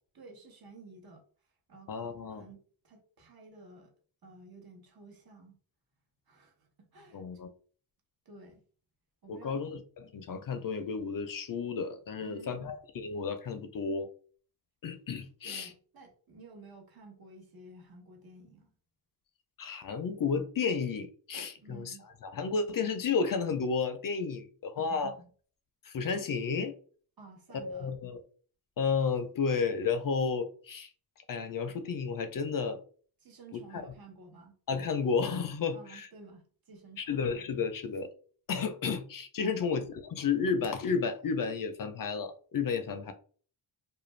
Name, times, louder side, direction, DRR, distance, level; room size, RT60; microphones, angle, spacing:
voice 1, 0.1-1.2 1.7-3.9 4.2-5.6 6.3-7.5 8.2-8.6 9.2-9.6 12.2-12.7 15.4-18.7 21.6-22.1 24.8-25.3 27.2-27.9 33.2-34.6 35.7-37.2 39.4-39.7, right 3 dB, 55° right, 1.0 m, -53 dB
voice 2, 1.9-2.4 7.1-7.5 9.3-9.8 10.1-14.1 14.8-15.7 19.6-21.9 22.2-25.1 25.8-26.8 27.6-28.2 28.8-30.9 31.3-32.8 33.7-33.9 34.7-36.1 37.0-38.1 38.5-43.1, left 5 dB, 50° left, 0.4 m, -32 dB
2.4 x 2.2 x 3.1 m
wide cardioid pair, 90°, 44 cm